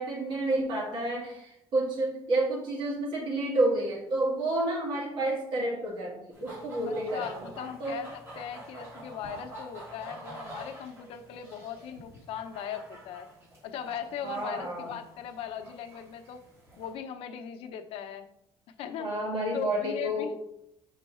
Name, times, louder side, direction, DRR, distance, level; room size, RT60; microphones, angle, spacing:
voice 1, 0.0-7.5 7.8-8.0 14.2-14.9 19.0-20.3, right 1 dB, 55° right, -4 dB, 1.9 m, -30 dB
sound 1, 6.3-16.9, right 1 dB, 25° right, 2.5 m, -47 dB
voice 2, 6.8-13.3 13.6-16.4 16.8-18.3 18.8-19.1 19.5-20.3, left 8 dB, 75° left, 7 dB, 0.7 m, -39 dB
5.4 x 4.0 x 5.4 m, 0.79 s
cardioid pair, 175°, 10 cm